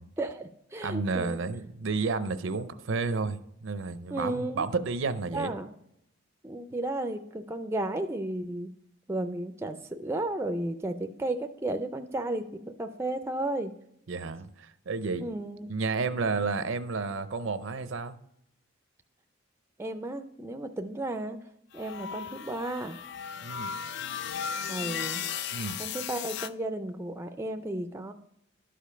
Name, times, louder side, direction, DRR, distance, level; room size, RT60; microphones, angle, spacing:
voice 1, 0.2-1.4 4.1-4.7 5.3-5.7 6.4-8.7 9.1-13.7 15.2-15.7 19.8-21.4 21.7-23.0 24.7-25.2 25.8-28.1, right 1 dB, 15° right, 7 dB, 0.4 m, -33 dB
voice 2, 0.8-5.6 14.1-15.3 15.7-18.2 23.4-23.7 25.5-25.8, right 4 dB, 65° right, 12 dB, 0.5 m, -31 dB
sound 1, 21.7-26.5, left 8 dB, 55° left, 0.4 m, -36 dB
12.0 x 5.1 x 5.6 m, 0.77 s
head